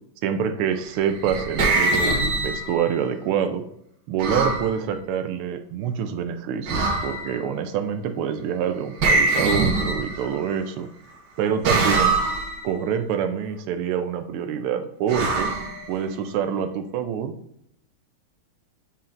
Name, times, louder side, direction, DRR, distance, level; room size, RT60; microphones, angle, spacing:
voice 1, 0.2-3.6 4.1-10.9 11.4-12.2 12.6-15.5 15.9-17.3, right 8 dB, 85° right, 8 dB, 1.6 m, -26 dB
sound 1, 0.9-2.9 4.2-4.7 6.7-7.4 9.0-10.5 11.6-12.6 15.1-16.3, right 3 dB, 55° right, 1.5 m, -23 dB
8.4 x 5.6 x 2.6 m, 0.73 s
omnidirectional pair, 2.4 m